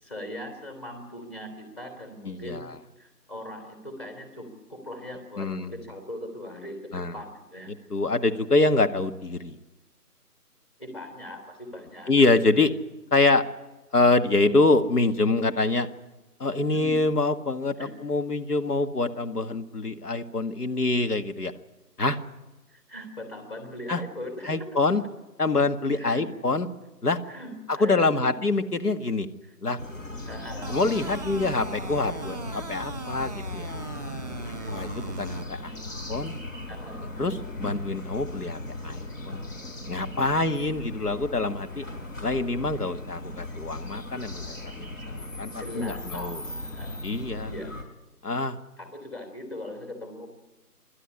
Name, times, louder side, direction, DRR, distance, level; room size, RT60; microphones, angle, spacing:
voice 1, 0.0-7.7 10.8-12.1 14.5-14.6 16.7-17.0 17.8-17.9 22.7-24.8 25.9-26.2 27.3-28.4 29.4-29.5 30.3-30.8 34.5-34.8 36.7-37.0 45.5-47.0 47.4-47.9 48.8-50.3, left 1 dB, 15° left, 2 dB, 3.4 m, -40 dB
voice 2, 2.3-2.6 5.4-5.7 6.9-7.1 7.9-9.6 12.1-12.7 13.1-13.4 13.9-15.9 16.4-21.5 22.0-22.2 23.9-24.0 24.5-25.0 25.4-26.7 27.0-27.2 27.8-29.3 29.6-29.8 30.7-33.7 34.4-35.8 36.1-36.3 37.2-39.4 39.9-41.9 42.2-44.4 44.8-44.9 45.2-46.4 47.0-47.5 48.2-48.6, left 3 dB, 75° left, 7 dB, 2.0 m, -25 dB
sound 1, 29.8-47.8, left 2 dB, 55° left, 4.8 m, -38 dB
sound 2, 30.6-35.4, right 3 dB, 25° right, 1.2 m, -39 dB
27.5 x 12.5 x 10.0 m, 1.1 s
figure-of-eight pair, 170°, 47 cm